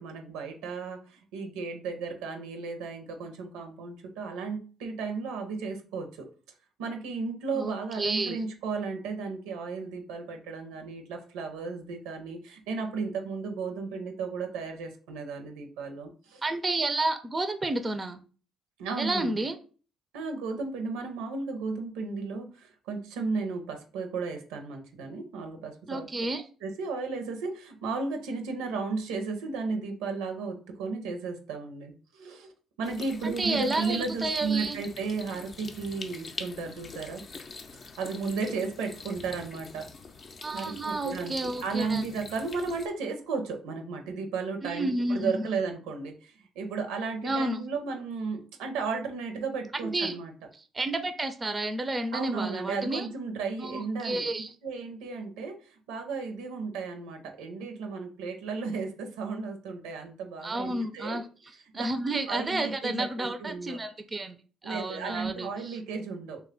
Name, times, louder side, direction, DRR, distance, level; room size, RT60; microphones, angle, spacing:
voice 1, 0.0-6.3 6.8-16.4 18.8-19.4 20.1-26.1 26.6-32.5 32.8-37.2 38.0-39.9 40.5-41.3 41.6-50.3 52.1-54.3 54.6-61.2 61.7-61.9 62.3-63.8 64.6-66.4, right 4 dB, 80° right, 5 dB, 0.5 m, -34 dB
voice 2, 7.5-8.4 16.4-18.2 19.0-19.6 25.9-26.4 33.2-34.8 40.4-42.1 44.6-45.4 47.2-47.6 49.8-50.2 50.5-53.1 53.6-54.5 60.4-61.3 61.7-64.4 64.6-65.8, right 2 dB, 30° right, 9 dB, 0.4 m, -31 dB
sound 1, 32.8-42.9, left 4 dB, 45° left, 0.5 m, -44 dB
3.1 x 2.2 x 3.6 m, 0.38 s
hypercardioid pair, 50°, 0 cm